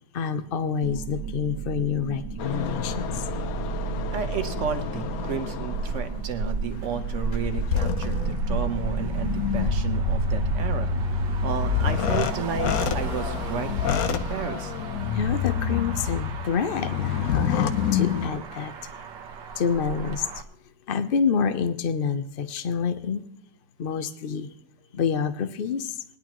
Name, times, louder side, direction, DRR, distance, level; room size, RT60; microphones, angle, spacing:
voice 1, 0.1-3.2 15.1-18.8 19.6-20.4 20.9-23.2 23.8-24.5 24.9-26.0, left 6 dB, 80° left, 11 dB, 0.5 m, -27 dB
sound 1, 0.8-13.0, right 7 dB, 35° right, 0.3 m, -34 dB
sound 2, 2.4-6.1 6.7-18.3, left 7 dB, 65° left, 1.0 m, -28 dB
voice 2, 4.1-10.9 11.4-14.7, right 7 dB, 50° right, 8 dB, 1.1 m, -32 dB
Motor vehicle (road), 5.7-20.4, right 3 dB, 80° right, 1.6 m, -34 dB
20.0 x 11.0 x 3.1 m, 0.66 s
omnidirectional pair, 1.9 m